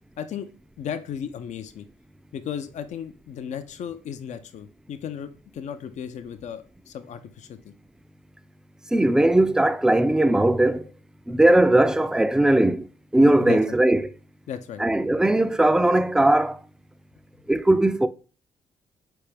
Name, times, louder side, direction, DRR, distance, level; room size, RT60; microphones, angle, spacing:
voice 1, 0.2-0.5 0.8-1.9 2.3-7.7 13.4-13.8 14.5-14.8, left 8 dB, 65° left, 0.4 m, -35 dB
voice 2, 8.9-10.9 11.3-12.9 13.1-14.1 14.8-16.6 17.5-18.1, right 1 dB, 5° right, 0.3 m, -19 dB
4.1 x 3.4 x 3.3 m
supercardioid pair, 60°, 13 cm